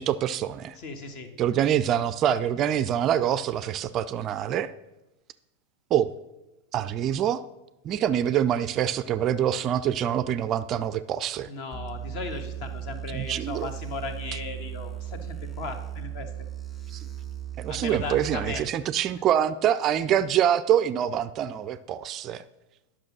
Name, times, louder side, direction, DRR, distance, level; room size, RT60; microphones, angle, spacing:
voice 1, 0.0-0.8 1.4-4.7 5.9-6.1 6.7-7.4 7.8-11.5 13.1-13.7 16.9-17.1 17.6-22.4, right 10 dB, 35° right, 14 dB, 0.4 m, -25 dB
voice 2, 0.7-1.3 11.5-16.3 17.7-18.6, left 4 dB, 45° left, 8 dB, 1.3 m, -36 dB
sound 1, 11.7-18.6, right 11 dB, 5° left, 1.7 m, -37 dB
10.5 x 6.0 x 6.1 m, 0.99 s
figure-of-eight pair, 90°, 0 cm